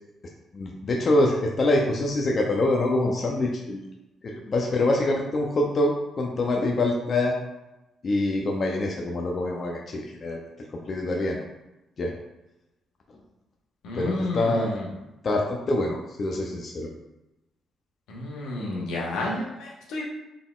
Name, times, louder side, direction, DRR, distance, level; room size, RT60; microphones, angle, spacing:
voice 1, 0.5-3.8 4.2-7.4 8.0-10.4 10.7-11.4 12.0-12.1 14.0-14.8 15.2-16.9, left 2 dB, 45° left, 0 dB, 0.5 m, -25 dB
voice 2, 13.8-14.8 18.1-20.0, left 1 dB, 90° left, -3 dB, 1.1 m, -30 dB
3.9 x 3.6 x 2.4 m, 0.96 s
cardioid pair, 90°, 0 cm